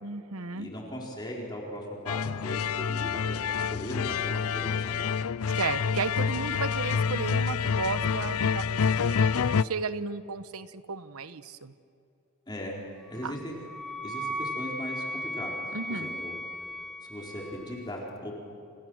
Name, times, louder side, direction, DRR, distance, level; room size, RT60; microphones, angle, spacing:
voice 1, 0.0-0.7 5.6-11.7 13.2-13.4 15.7-16.1, right 4 dB, 85° right, 12 dB, 1.1 m, -34 dB
voice 2, 0.5-5.1 12.5-12.8 13.1-13.5 14.0-15.5 15.9-16.3 17.1-18.3, equal, 20° left, -2 dB, 4.2 m, -38 dB
sound 1, 2.1-9.6, left 6 dB, 85° left, 0.5 m, -27 dB
Wind instrument woodwind instrument, 13.1-17.9, equal, ahead, 1.7 m, -37 dB
29.5 x 29.5 x 6.4 m, 2.6 s
head